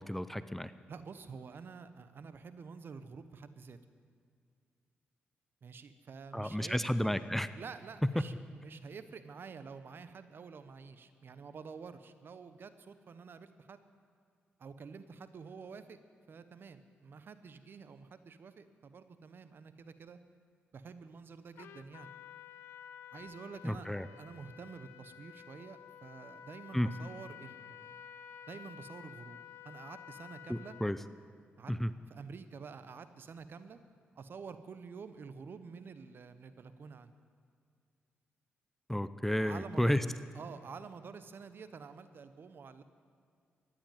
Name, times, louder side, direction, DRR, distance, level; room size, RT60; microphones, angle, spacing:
voice 1, 0.0-0.7 6.3-7.5 8.0-8.1 23.6-24.1 26.7-26.9 30.5-31.0 31.7-31.9 38.9-40.0, equal, 5° left, 13 dB, 0.6 m, -32 dB
voice 2, 0.9-3.8 5.6-6.8 7.5-13.8 14.6-16.0 16.3-20.2 20.7-22.2 23.1-23.9 24.2-27.9 28.5-29.4 29.6-30.8 31.6-31.7 32.1-33.8 34.1-37.1 39.4-39.9 40.3-42.8, right 5 dB, 60° right, 12 dB, 1.0 m, -49 dB
Trumpet, 21.6-31.1, left 9 dB, 85° left, 0.6 m, -52 dB
14.5 x 10.5 x 9.2 m, 2.2 s
cardioid pair, 60°, 4 cm